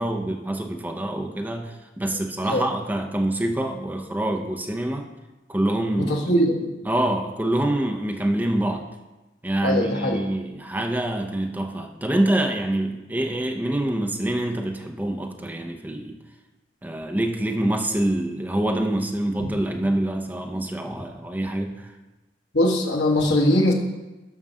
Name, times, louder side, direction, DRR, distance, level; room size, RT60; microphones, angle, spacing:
voice 1, 0.0-5.1 5.5-6.3 6.8-8.8 9.4-16.2 16.8-21.9, right 1 dB, 10° right, 3 dB, 0.8 m, -26 dB
voice 2, 6.0-6.7 9.6-10.2 22.5-23.7, left 1 dB, 70° left, 0 dB, 1.4 m, -21 dB
7.3 x 5.5 x 6.3 m, 1.1 s
head